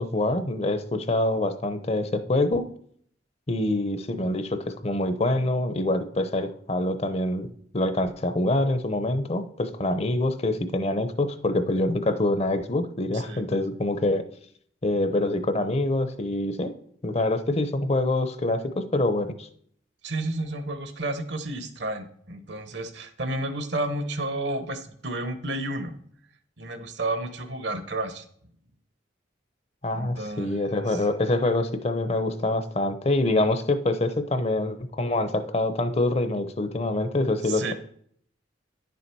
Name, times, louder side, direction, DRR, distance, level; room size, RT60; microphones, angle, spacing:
voice 1, 0.0-2.7 3.5-7.5 7.7-14.3 14.8-16.7 17.0-19.5 29.8-37.7, left 2 dB, 35° left, 10 dB, 0.7 m, -25 dB
voice 2, 20.0-26.0 26.6-28.2 29.9-30.6 30.9-31.0 37.4-37.7, right 2 dB, 65° right, 9 dB, 1.2 m, -31 dB
10.5 x 7.0 x 4.6 m, 0.63 s
head